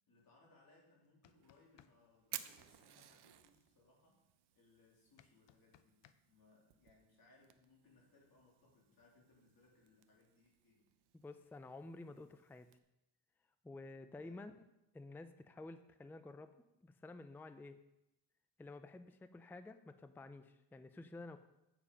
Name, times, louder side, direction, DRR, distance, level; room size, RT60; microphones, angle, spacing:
voice 1, 0.1-4.2 4.5-10.9 14.2-14.5, left 2 dB, 55° left, -2 dB, 3.1 m, -69 dB
sound 1, 1.0-1.9 5.2-6.2, left 11 dB, 80° left, 0.6 m, -66 dB
Fire, 1.3-12.8, right 11 dB, 65° right, 0.7 m, -57 dB
voice 2, 11.1-12.7 13.6-14.7 14.9-16.5 16.8-17.8 18.6-21.4, left 2 dB, 5° left, 10 dB, 0.4 m, -52 dB
8.6 x 7.4 x 5.2 m, 0.88 s
wide cardioid pair, 125°, 43 cm